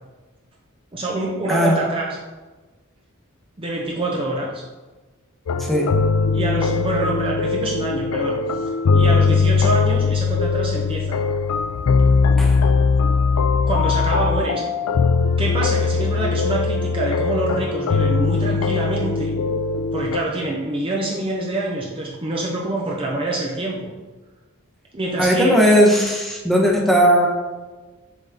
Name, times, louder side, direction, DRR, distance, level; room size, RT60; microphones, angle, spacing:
voice 1, 0.9-2.1 3.6-4.6 6.3-11.2 13.7-14.6 15.4-19.3 19.9-23.9 24.9-25.6, right 2 dB, 25° right, -2 dB, 0.7 m, -26 dB
voice 2, 1.5-1.8 5.6-5.9 12.4-12.6 25.2-27.3, equal, ahead, -2 dB, 1.0 m, -17 dB
sound 1, 5.5-20.2, left 4 dB, 70° left, 0.4 m, -20 dB
7.1 x 4.1 x 3.5 m, 1.2 s
head